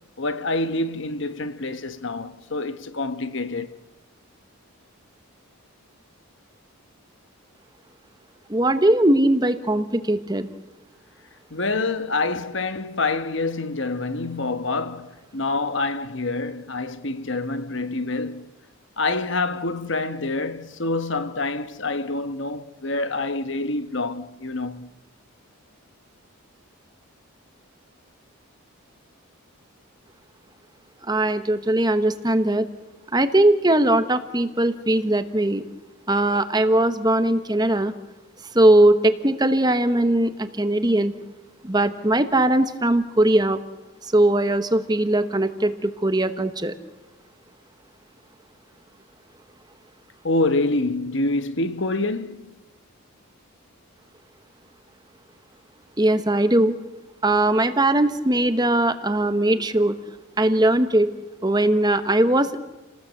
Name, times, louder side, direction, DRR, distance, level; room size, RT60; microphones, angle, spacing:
voice 1, 0.2-3.7 11.5-18.4 19.0-24.9 50.2-52.5, left 2 dB, 55° left, 1.2 m, -26 dB
voice 2, 8.5-10.5 31.1-32.7 33.1-35.6 36.1-37.9 38.5-41.1 41.6-43.6 44.0-46.7 56.0-56.8 57.2-59.9 60.4-61.1 61.4-62.6, right 1 dB, 20° right, 1.1 m, -20 dB
29.5 x 19.0 x 8.0 m
head